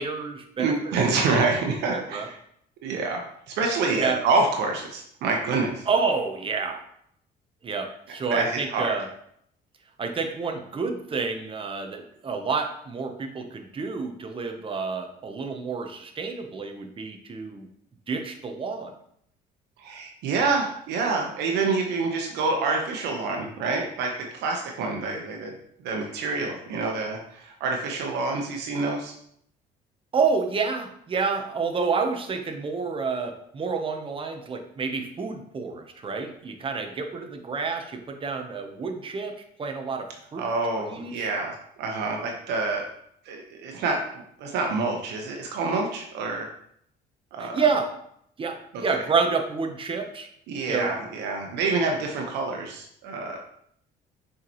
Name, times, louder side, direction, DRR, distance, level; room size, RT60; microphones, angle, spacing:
voice 1, 0.0-0.7 1.0-1.5 1.9-2.3 3.9-4.2 5.9-6.8 7.6-9.1 10.0-17.7 18.1-18.9 30.1-40.5 40.8-41.3 47.4-47.9 48.4-50.3 50.7-50.9, right 5 dB, 30° right, 5 dB, 0.9 m, -29 dB
voice 2, 0.6-2.4 2.8-5.8 8.3-9.0 19.8-25.5 25.8-29.1 40.4-42.9 43.2-46.5 47.3-47.6 48.7-48.8 50.5-53.4, right 3 dB, 85° right, 1 dB, 1.1 m, -27 dB
6.5 x 4.9 x 3.1 m, 0.70 s
cardioid pair, 110°, 17 cm